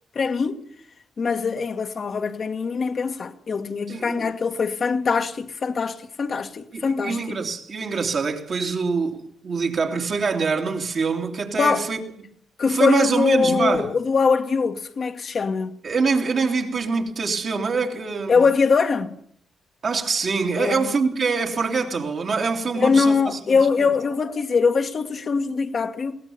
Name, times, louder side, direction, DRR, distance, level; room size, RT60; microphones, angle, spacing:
voice 1, 0.2-0.6 1.2-7.4 11.6-11.9 12.6-15.7 18.3-19.2 20.6-20.9 22.8-26.2, left 5 dB, 50° left, 1.7 m, -22 dB
voice 2, 3.9-4.3 6.7-12.0 12.7-13.9 15.8-18.4 19.8-23.9, right 4 dB, 55° right, 2.9 m, -24 dB
21.5 x 17.5 x 7.0 m
hypercardioid pair, 45°, 0 cm